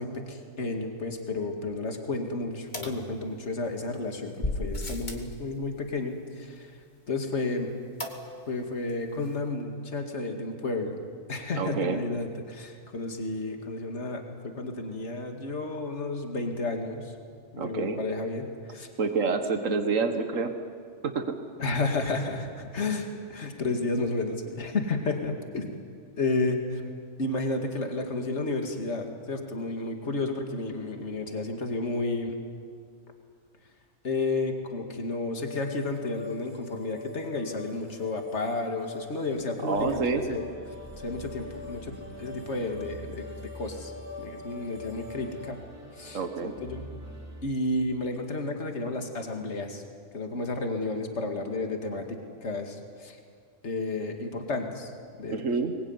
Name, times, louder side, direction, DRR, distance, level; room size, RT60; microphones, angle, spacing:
voice 1, 0.0-6.8 7.1-7.7 8.5-11.0 11.3-17.1 17.5-18.9 21.6-25.7 26.2-26.8 27.2-32.4 34.0-40.4 41.0-43.9 44.2-45.6 45.9-46.9 47.4-49.8 50.1-53.2 53.6-54.9 55.2-55.4, left 2 dB, 60° left, 4 dB, 2.5 m, -32 dB
sound 1, 2.7-3.7 4.4-5.3 8.0-8.6 8.9-9.0 9.2-9.3, left 2 dB, 35° left, 2.6 m, -34 dB
voice 2, 11.6-12.0 17.6-18.0 19.0-20.5 21.0-21.2 39.6-40.2 46.1-46.5 55.3-55.7, right 4 dB, 80° right, 7 dB, 1.9 m, -27 dB
sound 2, 35.4-45.5, left 5 dB, 40° right, 1.7 m, -44 dB
sound 3, 39.7-47.4, right 1 dB, 10° right, 3.0 m, -46 dB
24.5 x 21.0 x 9.8 m, 2.1 s
omnidirectional pair, 1.3 m